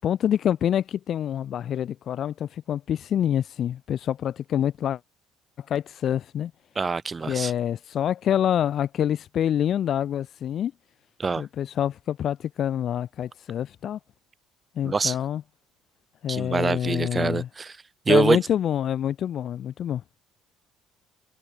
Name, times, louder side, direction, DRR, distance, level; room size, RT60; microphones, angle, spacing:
voice 1, 0.0-5.0 5.6-6.5 7.3-10.7 11.4-14.0 14.8-15.4 16.2-17.5 18.1-20.0, left 10 dB, 55° left, 7.9 m, -26 dB
voice 2, 6.8-7.5 11.2-11.5 14.8-15.2 16.3-17.8 18.1-18.4, right 4 dB, 25° right, 7.6 m, -24 dB
cardioid pair, 100°, 0 cm